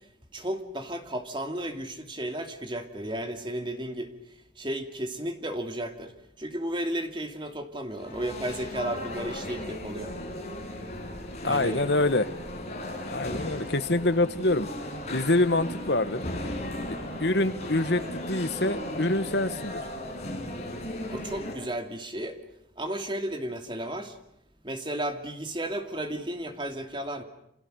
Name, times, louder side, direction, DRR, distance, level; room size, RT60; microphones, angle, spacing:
voice 1, 0.3-4.1 4.6-6.1 6.4-10.1 11.4-11.8 13.3-13.6 21.1-22.4 22.8-24.2 24.6-27.2, right 1 dB, 25° right, 6 dB, 2.6 m, -33 dB
sound 1, 7.9-21.5, left 1 dB, 35° left, 6.7 m, -36 dB
voice 2, 11.4-12.3 13.1-14.7 15.1-16.2 16.9-19.8, left 2 dB, 70° left, 10 dB, 1.6 m, -25 dB
29.0 x 27.0 x 6.6 m, 0.77 s
head